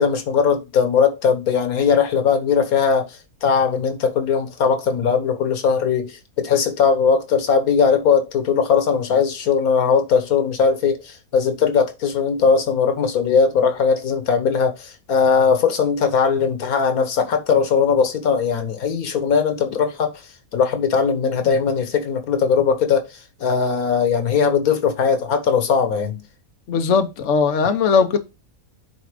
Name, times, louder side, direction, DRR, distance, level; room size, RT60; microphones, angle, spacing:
voice 1, 0.0-20.1 20.5-26.2, left 6 dB, 90° left, 1.7 m, -19 dB
voice 2, 26.7-28.2, left 5 dB, 60° left, 1.2 m, -18 dB
9.2 x 3.8 x 4.9 m
omnidirectional pair, 1.5 m